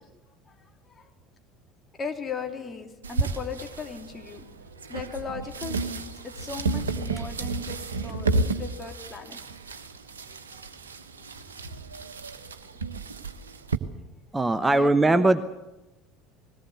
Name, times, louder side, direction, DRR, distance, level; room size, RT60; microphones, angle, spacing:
voice 1, 2.0-4.4 4.9-9.4 14.7-15.3, left 5 dB, 25° left, 4 dB, 3.1 m, -37 dB
sound 1, 3.0-13.8, right 3 dB, 80° right, 1.3 m, -32 dB
voice 2, 14.3-15.4, right 2 dB, 15° right, 10 dB, 1.0 m, -20 dB
21.0 x 18.0 x 8.2 m, 1.0 s
figure-of-eight pair, 70°, 0 cm